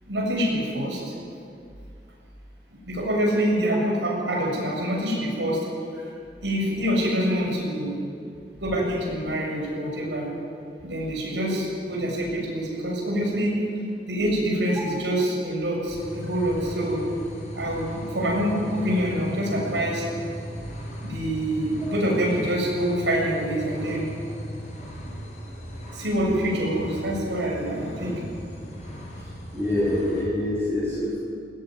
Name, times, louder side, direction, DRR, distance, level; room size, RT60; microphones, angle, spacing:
voice 1, 0.0-1.0 2.9-5.7 6.4-7.9 8.6-10.3 10.8-13.5 14.1-17.0 17.5-20.1 21.0-24.1 25.9-28.2, equal, 85° right, -1 dB, 7.4 m, -26 dB
sound 1, 15.9-30.2, right 1 dB, 45° left, 6.4 m, -38 dB
voice 2, 29.5-31.2, left 1 dB, 15° right, -7 dB, 6.2 m, -26 dB
20.5 x 19.0 x 9.5 m, 2.4 s
head